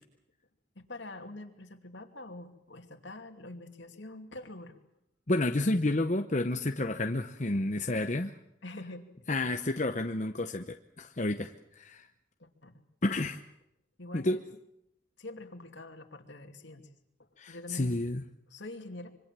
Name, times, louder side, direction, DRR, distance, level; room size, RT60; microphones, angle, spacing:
voice 1, 0.8-4.8 8.6-9.0 12.4-12.7 13.1-13.4 14.0-14.4 15.2-16.9 17.5-18.0 18.5-19.1, left 2 dB, 70° left, 5 dB, 2.7 m, -45 dB
voice 2, 5.3-8.3 9.3-12.1 13.0-13.4 14.1-14.4 17.4-18.2, left 2 dB, 40° left, 6 dB, 0.9 m, -30 dB
25.5 x 24.0 x 7.6 m, 0.83 s
head